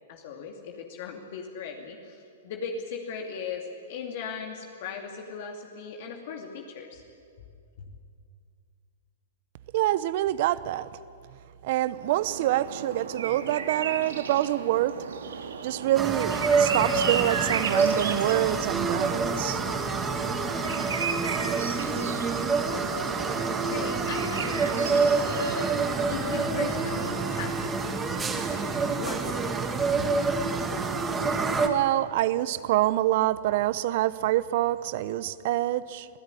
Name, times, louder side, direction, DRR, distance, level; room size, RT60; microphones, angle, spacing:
voice 1, 0.1-7.0 7.8-7.9 23.4-25.7 26.1-28.4 28.9-29.5 30.0-30.1, left 6 dB, 55° left, 2 dB, 2.6 m, -38 dB
voice 2, 9.7-10.9 11.6-15.0 15.6-19.6 31.6-36.1, right 15 dB, 55° right, 17 dB, 0.9 m, -26 dB
sound 1, 11.9-27.8, right 6 dB, 85° right, 2.2 m, -35 dB
sound 2, 15.9-31.7, right 4 dB, 15° right, 2.0 m, -27 dB
25.5 x 16.0 x 9.9 m, 2.4 s
hypercardioid pair, 125°, 0 cm